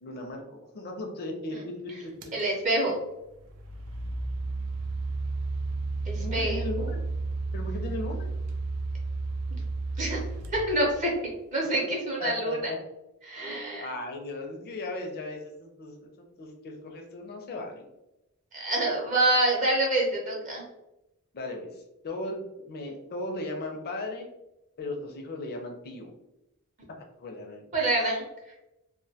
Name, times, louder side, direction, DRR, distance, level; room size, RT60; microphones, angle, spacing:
voice 1, 0.0-1.6 1.8-2.3 6.2-7.0 7.5-8.3 12.2-12.6 13.4-17.9 21.3-22.4 22.7-24.3 24.8-26.1 27.2-27.6, left 2 dB, 45° left, 2 dB, 0.4 m, -37 dB
sound 1, 2.2-2.4 3.3-11.3, right 3 dB, 80° right, 0.4 m, -32 dB
voice 2, 2.3-3.0 6.1-6.9 9.5-9.6 10.0-10.2 10.5-11.1 11.5-12.7 13.2-13.9 18.5-20.6 27.7-28.2, right 1 dB, 35° right, -2 dB, 0.5 m, -26 dB
2.1 x 2.1 x 2.7 m, 0.91 s
head